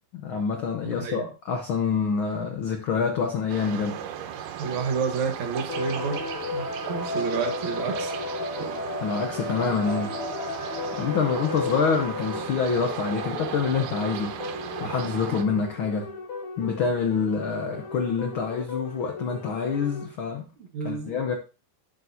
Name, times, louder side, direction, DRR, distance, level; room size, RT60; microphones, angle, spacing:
voice 1, 0.1-4.0 9.0-10.2 10.9-14.4 14.8-16.2 16.6-20.4 20.8-21.3, left 5 dB, 85° left, 1.1 m, -26 dB
voice 2, 0.8-1.3 4.6-8.3 20.6-21.1, right 5 dB, 65° right, 2.6 m, -30 dB
sound 1, 3.5-15.4, right 9 dB, 85° right, 2.5 m, -36 dB
sound 2, 5.7-20.1, left 3 dB, 55° left, 1.9 m, -34 dB
12.0 x 7.0 x 2.7 m
omnidirectional pair, 3.6 m